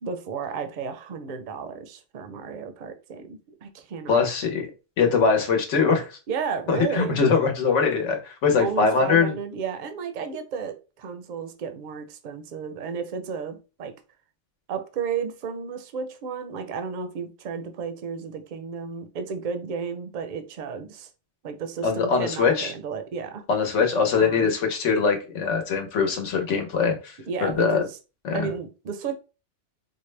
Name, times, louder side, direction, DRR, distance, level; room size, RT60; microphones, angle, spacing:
voice 1, 0.0-4.3 6.3-7.2 8.6-13.9 14.7-21.1 21.4-23.4 24.2-24.5 27.3-28.0 28.3-29.2, right 6 dB, 50° right, 0.6 m, -33 dB
voice 2, 4.1-4.7 5.0-6.2 6.7-9.3 21.8-22.7 23.5-27.8 28.2-28.5, left 5 dB, 75° left, 1.2 m, -22 dB
4.5 x 2.1 x 3.2 m
omnidirectional pair, 1.3 m